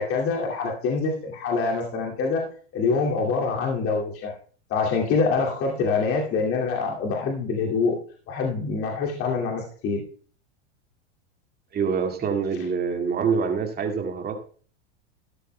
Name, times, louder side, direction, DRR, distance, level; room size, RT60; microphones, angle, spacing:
voice 1, 0.0-2.5 2.7-4.3 4.7-8.0 8.3-10.0, left 4 dB, 40° left, -1 dB, 2.4 m, -25 dB
voice 2, 11.7-14.5, right 6 dB, 30° right, 4 dB, 2.0 m, -26 dB
13.0 x 12.5 x 2.2 m, 0.43 s
hypercardioid pair, 110°, 33 cm